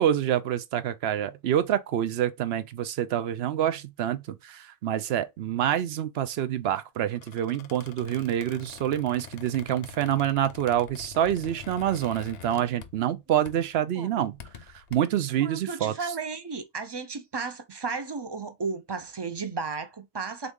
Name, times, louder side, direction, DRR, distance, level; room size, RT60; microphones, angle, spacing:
voice 1, 0.0-14.3 14.9-15.9, right 11 dB, 70° right, 0.8 m, -27 dB
Squeak, 7.1-13.2 13.4-13.7 14.2-14.9, left 8 dB, 70° left, 0.9 m, -46 dB
voice 2, 14.0-14.3 15.4-20.5, right 4 dB, 30° right, 0.5 m, -34 dB
3.9 x 3.6 x 3.6 m
omnidirectional pair, 1.1 m